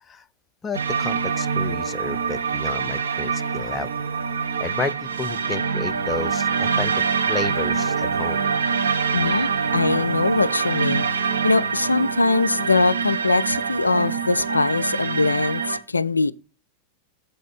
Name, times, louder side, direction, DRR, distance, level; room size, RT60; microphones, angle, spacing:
voice 1, 0.6-3.9 4.6-8.5 9.3-9.5, left 4 dB, 20° left, 0.4 m, -32 dB
sound 1, 0.7-15.8, right 6 dB, 70° right, 0.8 m, -25 dB
voice 2, 9.1-16.3, left 3 dB, 80° left, 0.4 m, -22 dB
7.1 x 4.1 x 5.0 m
figure-of-eight pair, 90°, 0 cm